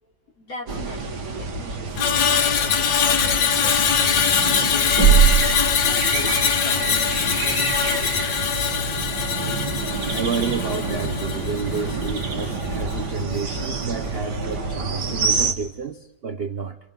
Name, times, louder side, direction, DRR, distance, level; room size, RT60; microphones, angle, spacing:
voice 1, 0.0-5.8 6.3-8.0, left 2 dB, 55° left, 4.1 m, -41 dB
sound 1, 0.7-15.5, right 5 dB, 75° right, 2.1 m, -25 dB
Screech, 2.0-12.3 12.6-12.9, left 7 dB, 70° left, 1.6 m, -22 dB
voice 2, 10.1-16.8, right 5 dB, 50° right, 0.8 m, -30 dB
28.0 x 28.0 x 3.8 m
omnidirectional pair, 1.8 m